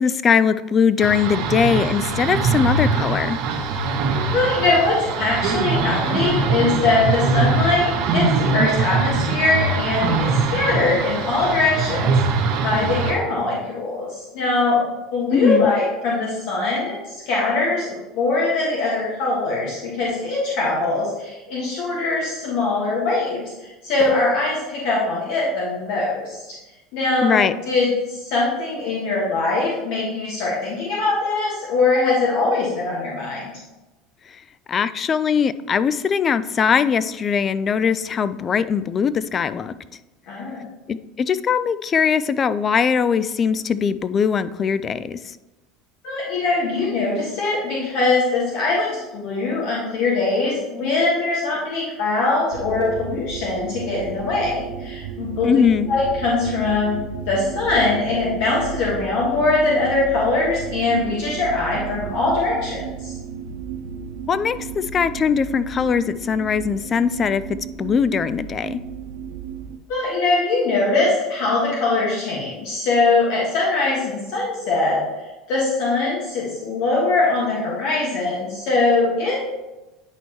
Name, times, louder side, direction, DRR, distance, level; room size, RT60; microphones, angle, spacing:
voice 1, 0.0-3.4 15.3-15.7 27.2-27.5 34.7-39.7 40.9-45.4 55.4-55.9 64.3-67.4 67.8-68.8, left 6 dB, 35° left, 15 dB, 0.3 m, -20 dB
sound 1, 1.0-13.1, right 4 dB, 65° right, 1.1 m, -22 dB
voice 2, 4.3-17.0 17.3-26.4 26.9-33.4 40.3-40.6 46.0-55.6 55.9-63.1 69.9-75.0 75.5-79.4, left 3 dB, 70° left, -5 dB, 1.7 m, -22 dB
sound 2, 52.5-69.8, right 7 dB, 80° right, 0.5 m, -34 dB
9.6 x 4.3 x 3.1 m, 1.1 s
supercardioid pair, 105°, 0 cm